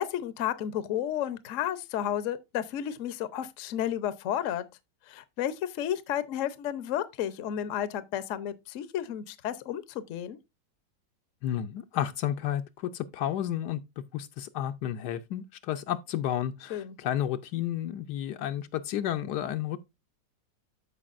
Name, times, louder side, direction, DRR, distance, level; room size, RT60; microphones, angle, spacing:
voice 1, 0.0-4.6 5.1-10.4 16.7-17.0, left 10 dB, 60° left, 0.9 m, -32 dB
voice 2, 11.4-13.8 14.1-19.8, left 11 dB, 75° left, 1.2 m, -31 dB
13.5 x 4.8 x 2.5 m
omnidirectional pair, 1.9 m